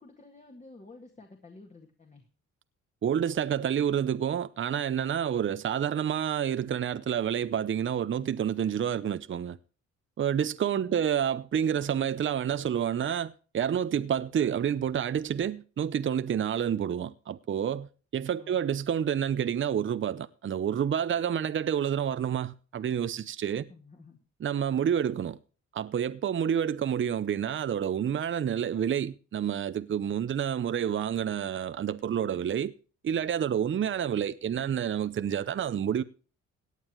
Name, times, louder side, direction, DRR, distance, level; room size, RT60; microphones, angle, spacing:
voice 1, 0.0-2.3 10.7-11.1 18.3-18.6 23.7-24.2, left 3 dB, 25° left, 2.1 m, -51 dB
voice 2, 3.0-9.6 10.2-23.7 24.4-25.4 25.7-32.7 33.0-36.0, right 9 dB, 40° right, 0.7 m, -29 dB
17.5 x 9.3 x 3.1 m
cardioid pair, 90°, 30 cm